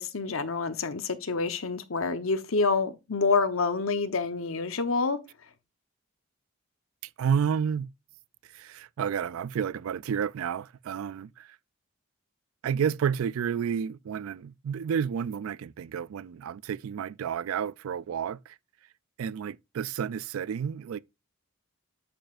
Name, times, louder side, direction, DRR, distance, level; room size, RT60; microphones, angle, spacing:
voice 1, 0.0-5.2, left 4 dB, 80° left, 1.0 m, -27 dB
voice 2, 7.2-7.9 8.4-11.6 12.6-18.6 19.2-21.0, right 7 dB, 85° right, 0.3 m, -31 dB
8.9 x 7.8 x 2.5 m
head